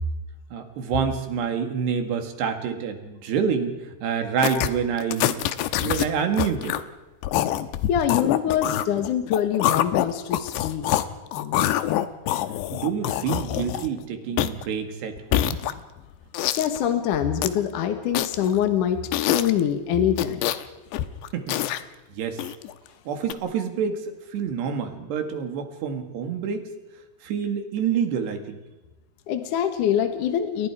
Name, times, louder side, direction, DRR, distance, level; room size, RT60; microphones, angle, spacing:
voice 1, 0.5-5.5 5.8-6.8 12.7-15.6 21.3-21.6 22.2-22.4 23.1-24.0 24.3-26.7 27.2-28.6, right 7 dB, 75° right, 6 dB, 4.2 m, -27 dB
sound 1, 4.4-4.7 5.0-6.1 6.3-6.8 7.2-11.0 11.3-14.0 14.4-14.6 15.2-16.0 16.3-16.8 17.1-17.6 18.1-18.6 19.1-19.6 20.1-20.6 20.9-21.8 22.4-22.7 23.3-23.4, left 13 dB, 85° left, 3.1 m, -25 dB
voice 2, 7.9-10.8 11.4-11.7 16.6-20.5 29.3-30.7, left 9 dB, 60° left, 7 dB, 2.4 m, -24 dB
30.0 x 22.5 x 4.9 m, 1.1 s
omnidirectional pair, 4.9 m